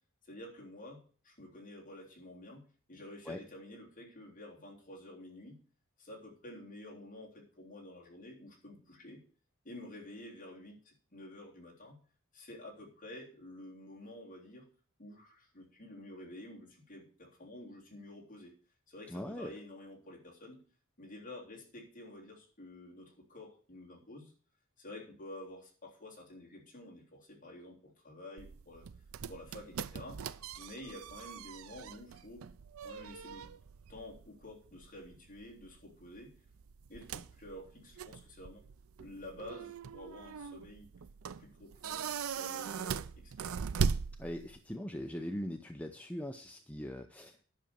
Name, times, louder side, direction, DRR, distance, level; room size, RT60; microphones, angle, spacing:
voice 1, 0.2-5.6 6.0-9.2 9.6-12.0 12.3-14.7 15.0-18.6 18.9-20.6 21.0-24.3 24.8-28.9 29.3-30.2 30.6-32.4 32.8-33.4 33.9-36.3 36.9-38.7 39.0-40.9 41.4-43.5, left 1 dB, 40° left, -2 dB, 3.4 m, -50 dB
voice 2, 19.1-19.5 44.2-47.3, left 1 dB, 5° left, 5 dB, 0.6 m, -41 dB
sound 1, 28.4-44.8, right 6 dB, 75° right, 0.5 m, -40 dB
10.5 x 6.2 x 6.9 m, 0.43 s
head